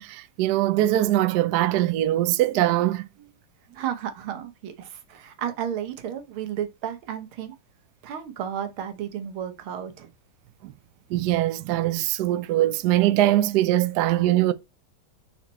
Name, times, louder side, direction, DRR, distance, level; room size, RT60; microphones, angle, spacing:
voice 1, 0.0-3.1 10.6-10.7 11.1-14.5, right 14 dB, 70° right, 1.0 m, -22 dB
voice 2, 3.8-7.5 8.0-10.1, right 9 dB, 90° right, 1.9 m, -33 dB
5.8 x 4.4 x 4.2 m
omnidirectional pair, 2.2 m